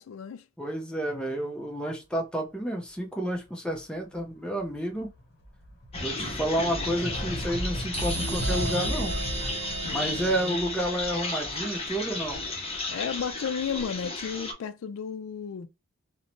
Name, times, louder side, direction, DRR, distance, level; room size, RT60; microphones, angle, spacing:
voice 1, 0.0-0.4 6.5-7.0 9.8-10.6 12.9-15.7, left 7 dB, 80° left, 0.4 m, -34 dB
voice 2, 0.6-5.1 6.0-9.1 9.8-12.4, right 1 dB, 5° left, 0.5 m, -30 dB
sound 1, 4.1-4.4 4.7-13.6, equal, 50° left, 1.0 m, -36 dB
sound 2, 5.9-14.5, left 2 dB, 30° left, 0.8 m, -34 dB
sound 3, 7.9-11.5, right 3 dB, 60° right, 0.7 m, -35 dB
2.6 x 2.1 x 2.8 m
head